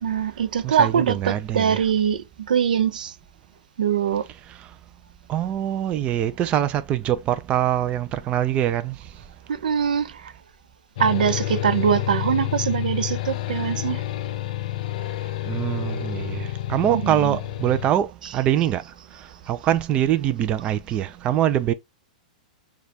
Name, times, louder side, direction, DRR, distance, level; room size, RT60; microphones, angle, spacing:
voice 1, 0.0-3.1 3.8-4.3 9.5-10.3 11.0-14.0 16.9-17.4, right 8 dB, 90° right, 0.5 m, -23 dB
voice 2, 0.6-1.8 5.3-9.0 15.4-18.8 19.5-21.7, right 11 dB, 30° right, 0.4 m, -23 dB
sound 1, 11.0-17.9, left 14 dB, 65° left, 0.5 m, -29 dB
6.3 x 2.4 x 2.8 m
hypercardioid pair, 140°, 4 cm